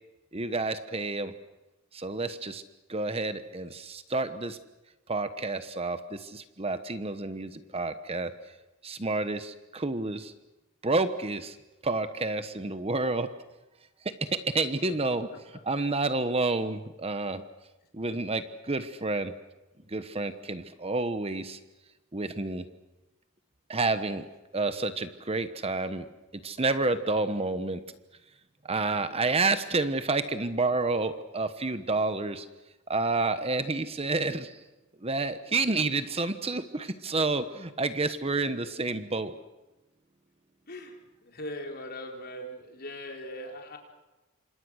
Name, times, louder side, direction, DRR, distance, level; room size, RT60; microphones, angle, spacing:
voice 1, 0.3-1.3 1.9-2.6 2.9-4.6 5.1-8.3 8.8-10.3 10.8-11.6 11.8-13.3 14.0-15.3 15.6-17.4 17.9-19.3 19.9-21.6 22.1-22.6 23.7-24.3 24.5-26.0 26.4-27.8 28.6-32.5 32.9-34.6 35.0-39.4, right 3 dB, 25° right, 10 dB, 1.1 m, -29 dB
voice 2, 41.2-43.8, left 1 dB, 45° left, 2 dB, 4.4 m, -40 dB
28.5 x 26.5 x 6.4 m, 1.1 s
head